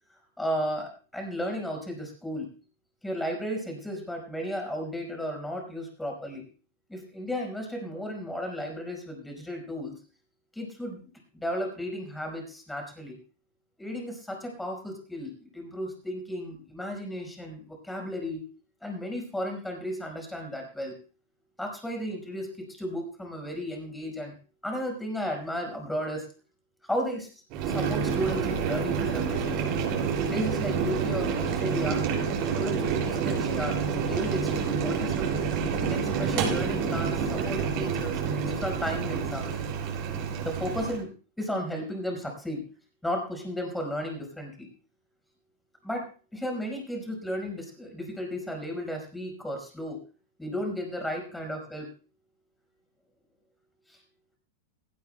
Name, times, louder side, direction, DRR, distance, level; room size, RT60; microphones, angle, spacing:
voice 1, 0.4-2.5 3.0-6.5 6.9-9.9 10.5-13.2 13.8-18.4 18.8-21.0 21.6-24.3 24.6-26.3 26.8-27.3 27.6-29.6 30.1-32.0 32.5-35.3 35.8-39.6 40.4-41.1 41.4-42.6 43.0-44.7 45.8-50.0 50.4-51.9 53.9-54.0, equal, 5° left, 2 dB, 5.0 m, -34 dB
Boiling, 27.5-41.0, right 6 dB, 45° right, 5.9 m, -28 dB
17.5 x 17.0 x 2.3 m, 0.37 s
supercardioid pair, 145°, 0 cm